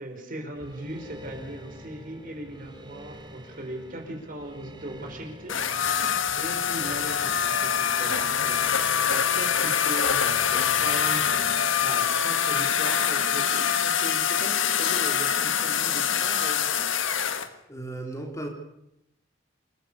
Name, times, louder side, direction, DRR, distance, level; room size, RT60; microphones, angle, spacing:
voice 1, 0.0-6.0 6.4-16.9, right 1 dB, 45° right, 3 dB, 5.1 m, -39 dB
sound 1, 0.6-11.9, equal, 25° right, 3.0 m, -45 dB
sound 2, 5.5-17.5, left 8 dB, 80° left, 1.7 m, -25 dB
voice 2, 17.4-18.5, right 2 dB, 15° left, 2 dB, 3.6 m, -36 dB
28.0 x 16.0 x 7.0 m, 0.80 s
head